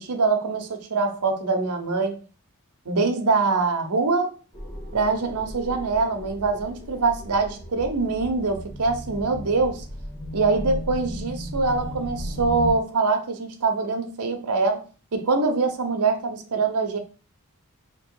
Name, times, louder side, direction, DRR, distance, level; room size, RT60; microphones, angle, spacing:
voice 1, 0.0-2.2 2.9-4.3 4.9-9.8 10.3-17.0, right 4 dB, 90° right, 4 dB, 0.8 m, -24 dB
sound 1, 4.5-12.7, equal, 25° left, 0.9 m, -35 dB
3.0 x 3.0 x 4.6 m, 0.36 s
head